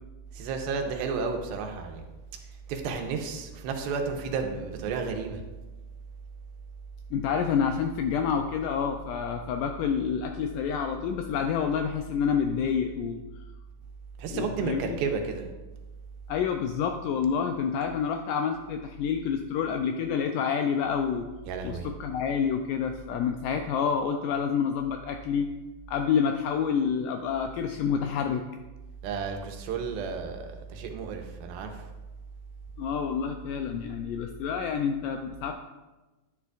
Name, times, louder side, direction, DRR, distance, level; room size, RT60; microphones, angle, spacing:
voice 1, 0.3-2.1 2.7-5.4 14.2-15.5 21.5-21.9 29.0-31.8, right 5 dB, 90° right, 4 dB, 2.7 m, -32 dB
voice 2, 7.1-13.5 14.3-15.0 16.3-21.3 21.6-25.5 25.9-28.5 32.8-35.5, left 7 dB, 85° left, 5 dB, 1.9 m, -28 dB
11.0 x 9.4 x 2.4 m, 1.1 s
omnidirectional pair, 4.2 m